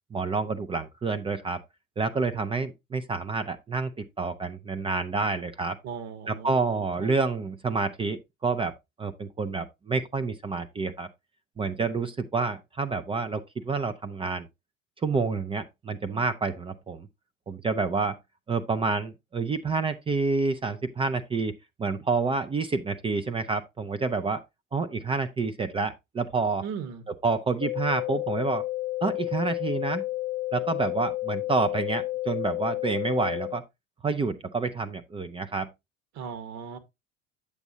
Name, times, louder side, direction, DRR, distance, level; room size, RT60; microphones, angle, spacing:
voice 1, 0.1-1.6 2.0-5.8 6.3-11.1 11.6-14.5 15.0-17.1 17.5-18.2 18.5-21.5 21.8-24.4 24.7-26.6 27.2-28.6 29.0-30.0 30.5-33.6 34.0-35.7, right 4 dB, 15° right, 0.5 m, -28 dB
voice 2, 5.8-7.1 26.6-27.1 36.1-36.8, right 6 dB, 45° right, 1.3 m, -38 dB
sound 1, 27.6-33.6, left 18 dB, 50° left, 0.4 m, -31 dB
8.3 x 7.0 x 2.7 m
figure-of-eight pair, 70°, 39 cm